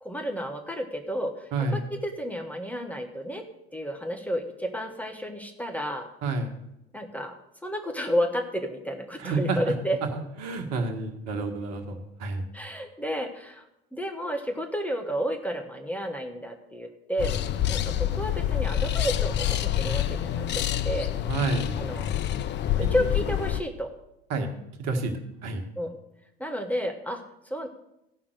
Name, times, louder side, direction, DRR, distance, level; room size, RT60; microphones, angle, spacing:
voice 1, 0.0-3.4 3.7-6.1 6.9-7.4 7.6-10.0 12.5-13.7 13.9-17.3 17.7-21.2 21.8-22.2 22.8-23.9 25.8-26.0 26.4-27.7, equal, 5° left, 3 dB, 1.4 m, -31 dB
voice 2, 9.2-9.7 10.1-12.4 21.3-21.8 24.3-24.5 24.8-25.1 25.4-25.6, right 3 dB, 55° right, 5 dB, 1.6 m, -29 dB
sound 1, 17.2-23.6, left 11 dB, 35° left, 0.6 m, -27 dB
15.0 x 5.8 x 6.5 m, 0.84 s
hypercardioid pair, 70°, 31 cm